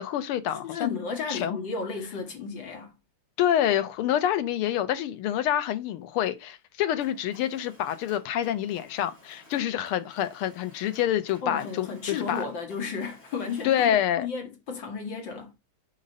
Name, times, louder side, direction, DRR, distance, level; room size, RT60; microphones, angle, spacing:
voice 1, 0.0-0.9 1.3-1.6 3.4-12.5 13.6-14.3, left 11 dB, 85° left, 1.7 m, -27 dB
voice 2, 0.6-2.9 11.4-15.6, left 5 dB, 60° left, 2.3 m, -33 dB
Mechanisms, 7.0-14.1, left 1 dB, 30° left, 2.6 m, -55 dB
5.3 x 5.1 x 4.1 m
omnidirectional pair, 2.4 m